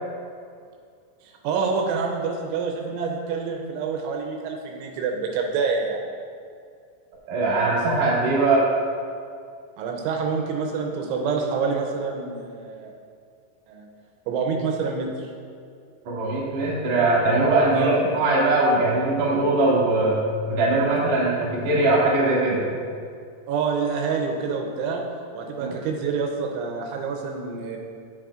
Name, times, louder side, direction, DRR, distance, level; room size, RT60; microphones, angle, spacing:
voice 1, 1.2-6.0 9.8-12.9 13.7-13.9 14.3-15.3 17.7-18.0 23.5-25.0 25.3-27.8, right 5 dB, 85° right, 1 dB, 3.0 m, -27 dB
voice 2, 7.3-8.7 16.0-20.2 20.5-22.6 25.6-25.7, right 2 dB, 55° right, -7 dB, 2.1 m, -21 dB
8.9 x 8.3 x 2.4 m, 2.3 s
omnidirectional pair, 5.5 m